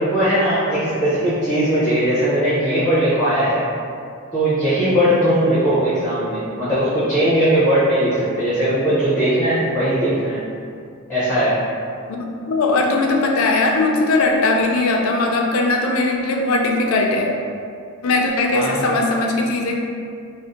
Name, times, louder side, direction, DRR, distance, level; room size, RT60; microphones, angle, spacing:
voice 1, 0.0-3.6 4.3-10.4 11.1-11.6 18.5-18.9, right 1 dB, 10° left, -11 dB, 0.6 m, -19 dB
voice 2, 12.1-17.3 18.0-19.8, left 2 dB, 70° left, 1 dB, 0.4 m, -19 dB
2.5 x 2.1 x 3.7 m, 2.3 s
head